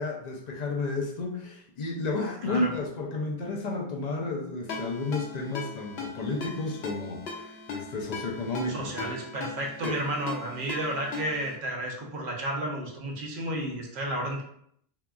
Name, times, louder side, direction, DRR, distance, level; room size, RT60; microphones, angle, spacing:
voice 1, 0.0-9.1 9.8-10.0, left 2 dB, 55° left, 0 dB, 0.5 m, -32 dB
voice 2, 2.4-2.7 8.7-14.4, right 1 dB, 60° right, 0 dB, 0.8 m, -32 dB
Ringtone, 4.7-11.6, left 4 dB, 85° left, 0.9 m, -39 dB
2.8 x 2.3 x 2.3 m, 0.68 s
omnidirectional pair, 1.0 m